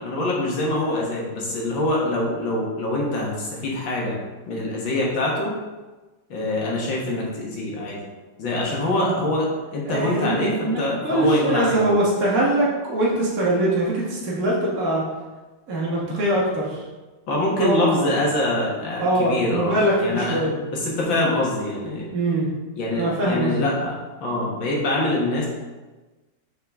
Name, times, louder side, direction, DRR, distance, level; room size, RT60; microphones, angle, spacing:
voice 1, 0.0-4.2 4.5-5.5 6.3-8.0 8.4-12.0 17.3-22.1 22.7-23.9 24.2-25.5, left 1 dB, 80° left, -3 dB, 2.2 m, -24 dB
voice 2, 9.9-15.0 15.7-16.8 17.6-17.9 19.0-20.5 22.1-22.5 23.0-23.7, right 1 dB, 50° right, -6 dB, 1.8 m, -22 dB
5.9 x 5.8 x 3.6 m, 1.2 s
omnidirectional pair, 2.0 m